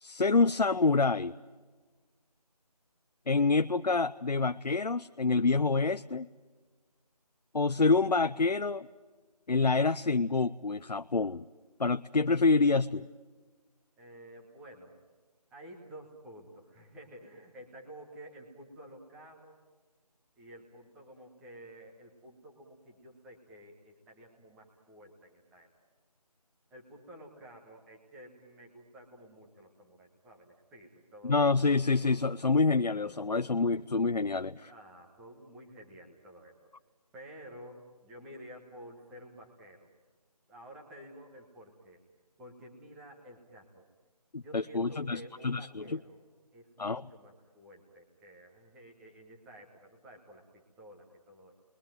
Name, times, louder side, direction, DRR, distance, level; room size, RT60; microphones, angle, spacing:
voice 1, 0.0-1.3 3.3-6.3 7.5-8.9 9.5-11.4 11.8-13.1 31.2-34.7 44.3-46.0 46.8-47.1, left 3 dB, 85° left, 9 dB, 0.8 m, -27 dB
voice 2, 14.0-15.0 15.5-19.6 20.4-25.7 26.7-31.4 34.7-36.6 37.1-39.9 40.5-42.0 42.4-43.8 44.3-46.2 46.5-51.5, equal, 5° right, 0 dB, 1.1 m, -51 dB
29.5 x 22.0 x 9.1 m, 1.4 s
figure-of-eight pair, 165°, 21 cm